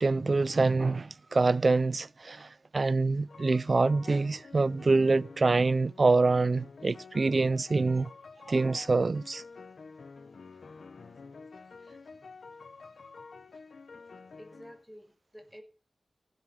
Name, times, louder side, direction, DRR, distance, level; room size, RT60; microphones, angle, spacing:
voice 1, 0.0-8.1 8.5-9.4, right 3 dB, 55° right, 0.7 m, -25 dB
sound 1, 3.3-14.8, left 4 dB, 80° left, 1.2 m, -49 dB
voice 2, 14.4-15.6, equal, ahead, 6.1 m, -50 dB
16.0 x 12.0 x 5.8 m
cardioid pair, 55°, 0 cm